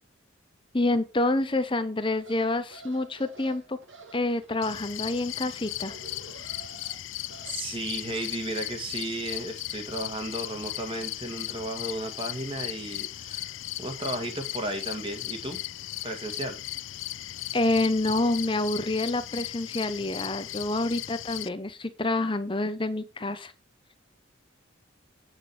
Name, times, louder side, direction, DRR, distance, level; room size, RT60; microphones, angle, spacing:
voice 1, 0.7-3.8 4.1-5.9 17.5-23.5, left 2 dB, 25° left, 10 dB, 0.9 m, -27 dB
sound 1, 2.1-7.6, right 3 dB, 70° right, 2.8 m, -50 dB
sound 2, 4.6-21.5, left 15 dB, 70° left, 0.4 m, -37 dB
voice 2, 7.5-15.6 16.0-16.6, right 1 dB, 25° right, 4 dB, 2.1 m, -34 dB
9.0 x 6.4 x 4.7 m, 0.32 s
head